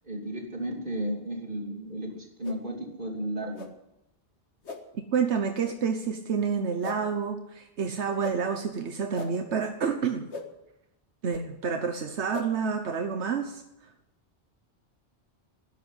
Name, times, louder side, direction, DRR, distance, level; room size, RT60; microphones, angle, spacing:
voice 1, 0.0-3.7, right 1 dB, 50° right, 1 dB, 3.3 m, -34 dB
sound 1, 2.4-2.6 3.5-3.7 4.6-4.8 5.6-5.8 6.8-7.0 8.2-8.4 9.1-9.3 10.3-10.5 11.3-11.4 12.3-12.5, left 3 dB, 85° left, 2.0 m, -38 dB
voice 2, 5.1-10.3 11.2-13.6, right 6 dB, 85° right, 6 dB, 1.3 m, -29 dB
12.5 x 11.0 x 9.9 m, 0.87 s
omnidirectional pair, 1.1 m